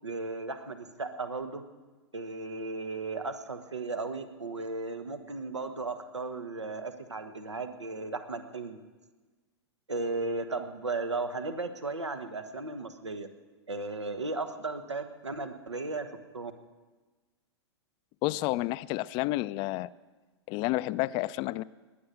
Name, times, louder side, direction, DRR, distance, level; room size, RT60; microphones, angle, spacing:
voice 1, 0.0-1.6 2.1-8.8 9.9-13.3 13.7-16.5, right 3 dB, 85° right, 8 dB, 1.3 m, -35 dB
voice 2, 18.2-19.9 20.5-21.6, left 18 dB, 35° left, 17 dB, 0.5 m, -30 dB
20.0 x 8.6 x 8.0 m, 1.3 s
figure-of-eight pair, 105°, 14 cm